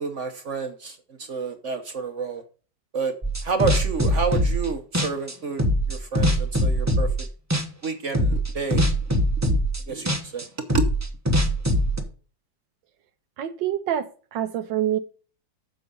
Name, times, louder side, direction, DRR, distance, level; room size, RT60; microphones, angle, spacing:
voice 1, 0.0-2.4 2.9-3.1 3.4-5.6 5.9-7.1 7.8-8.9 9.5-9.6 9.9-10.5 10.7-10.9, right 4 dB, 50° right, 1.0 m, -29 dB
sound 1, 3.2-4.7 4.9-7.3 7.5-7.9 8.1-12.0, equal, 15° right, 0.7 m, -22 dB
voice 2, 13.4-15.0, right 11 dB, 75° right, 1.4 m, -26 dB
7.7 x 6.9 x 5.3 m
omnidirectional pair, 2.1 m